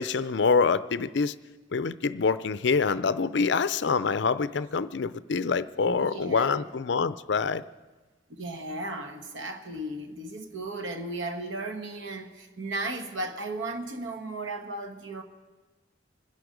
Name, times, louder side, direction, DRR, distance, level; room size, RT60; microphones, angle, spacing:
voice 1, 0.0-1.4 1.7-7.6, left 5 dB, 70° left, 15 dB, 0.5 m, -26 dB
voice 2, 5.8-6.8 8.3-15.2, right 2 dB, 85° right, 6 dB, 1.4 m, -35 dB
25.5 x 11.0 x 5.2 m, 1.2 s
head